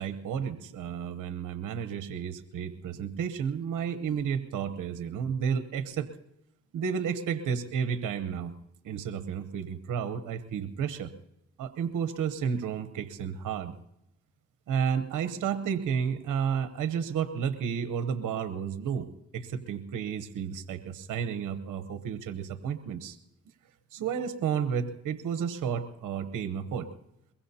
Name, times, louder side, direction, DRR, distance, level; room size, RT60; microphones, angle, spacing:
voice 1, 0.0-6.1 6.7-8.5 8.8-11.1 11.6-13.7 14.7-19.1 19.3-23.2 23.9-26.9, right 7 dB, 90° right, 11 dB, 0.9 m, -32 dB
23.0 x 22.0 x 2.8 m, 0.84 s
supercardioid pair, 50°, 30 cm